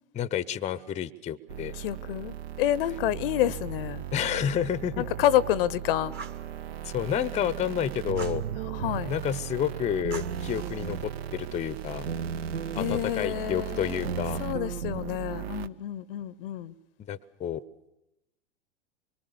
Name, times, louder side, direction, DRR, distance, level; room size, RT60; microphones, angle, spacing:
voice 1, 0.1-1.8 4.1-5.0 6.8-8.4 9.1-12.1 12.7-14.4 17.1-17.6, left 9 dB, 20° left, 0.8 m, -30 dB
sound 1, 1.5-15.7, right 11 dB, 60° right, 0.9 m, -37 dB
voice 2, 1.8-4.0 5.0-6.1 8.6-9.1 12.7-14.1 14.4-16.7, left 12 dB, 55° left, 0.8 m, -28 dB
Fire, 6.1-6.5 8.2-8.5 10.1-11.0, right 5 dB, 30° right, 1.6 m, -43 dB
sound 2, 8.1-9.0 10.0-11.1 12.1-13.0 14.0-15.0, right 6 dB, 75° right, 1.2 m, -35 dB
25.0 x 23.5 x 6.9 m
figure-of-eight pair, 95°, 35 cm